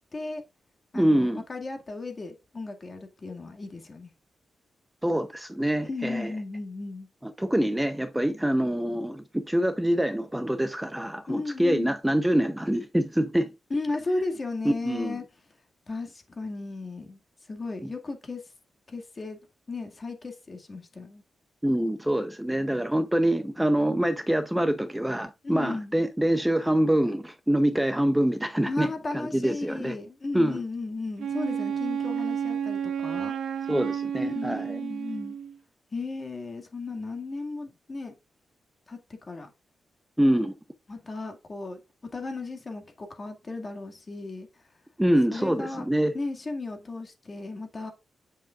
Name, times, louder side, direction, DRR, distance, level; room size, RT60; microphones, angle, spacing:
voice 1, 0.1-0.4 0.9-4.1 5.8-7.1 11.3-12.0 13.7-15.3 15.9-17.2 17.5-18.4 18.9-19.4 19.7-21.2 25.4-25.9 28.7-33.3 34.2-35.4 35.9-38.2 38.9-39.5 40.9-44.5 45.3-45.9 46.1-47.9, left 3 dB, 35° left, 2.0 m, -35 dB
voice 2, 0.9-1.4 5.0-6.3 7.2-13.5 14.6-15.2 17.8-17.9 21.6-30.0 30.3-30.6 33.7-34.8 40.2-40.5 45.0-46.1, right 1 dB, 5° right, 0.6 m, -25 dB
Wind instrument woodwind instrument, 31.2-35.6, right 8 dB, 85° right, 1.0 m, -31 dB
8.8 x 7.2 x 2.4 m
cardioid pair, 105°, 0 cm